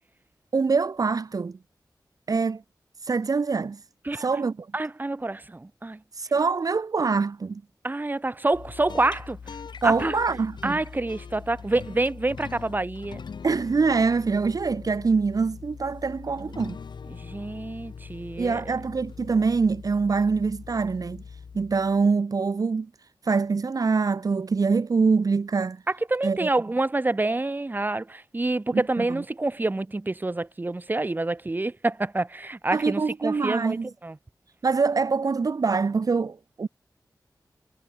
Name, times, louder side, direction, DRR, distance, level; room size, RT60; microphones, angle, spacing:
voice 1, 0.5-1.6 2.3-2.6 3.0-3.8 4.2-4.7 6.1-7.6 9.8-10.8 13.4-16.8 18.4-21.2 21.5-22.9 23.2-25.8 26.2-26.5 28.7-29.0 32.7-33.9 34.6-36.7, right 4 dB, 55° right, 1.0 m, -24 dB
voice 2, 4.7-6.0 7.8-9.4 9.8-10.2 10.6-13.2 17.1-18.8 25.9-34.2, right 2 dB, 25° right, 1.7 m, -27 dB
sound 1, 8.5-22.1, left 5 dB, 85° left, 5.8 m, -42 dB
wide cardioid pair, 100°, 7 cm